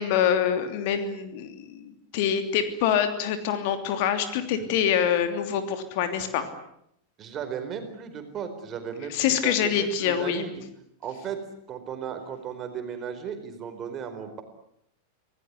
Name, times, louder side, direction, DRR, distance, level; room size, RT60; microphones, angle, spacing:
voice 1, 0.0-6.5 9.1-10.5, left 8 dB, 50° left, 8 dB, 3.0 m, -25 dB
voice 2, 7.2-10.6 11.0-11.4 11.7-14.4, right 7 dB, 30° right, 8 dB, 4.5 m, -35 dB
27.0 x 17.5 x 9.6 m, 0.74 s
figure-of-eight pair, 90°, 0 cm